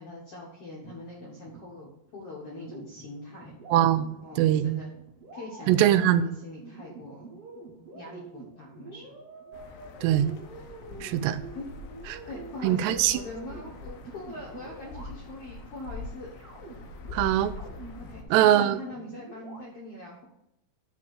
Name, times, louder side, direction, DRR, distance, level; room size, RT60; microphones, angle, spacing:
voice 1, 0.0-3.5 4.1-4.9 5.3-7.3 7.9-9.2 10.9-11.2 11.5-11.7 12.3-16.3 18.0-20.2, left 2 dB, 65° left, -3 dB, 1.5 m, -42 dB
sound 1, 0.8-2.2 2.5-15.7 16.3-19.6, right 3 dB, 45° right, 1.9 m, -47 dB
voice 2, 3.7-4.8 5.7-6.4 10.0-10.4 11.0-11.4 12.1-12.2 12.6-13.2 17.1-17.5 18.3-18.8, right 11 dB, 85° right, 13 dB, 2.7 m, -22 dB
sound 2, 9.5-18.2, left 3 dB, 90° left, 3.3 m, -44 dB
9.8 x 3.5 x 6.6 m, 0.80 s
omnidirectional pair, 4.7 m